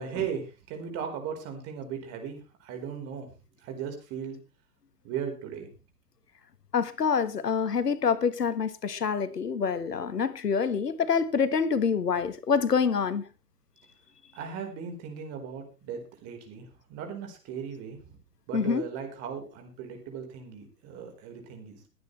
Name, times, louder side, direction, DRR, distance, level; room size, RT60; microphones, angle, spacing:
voice 1, 0.0-3.3 3.6-4.4 5.0-5.7 14.3-18.2 18.5-21.8, right 7 dB, 30° right, 4.5 m, -37 dB
voice 2, 6.7-13.2 18.5-18.9, left 6 dB, 80° left, 1.5 m, -26 dB
22.0 x 9.5 x 3.3 m
hypercardioid pair, 120°, 47 cm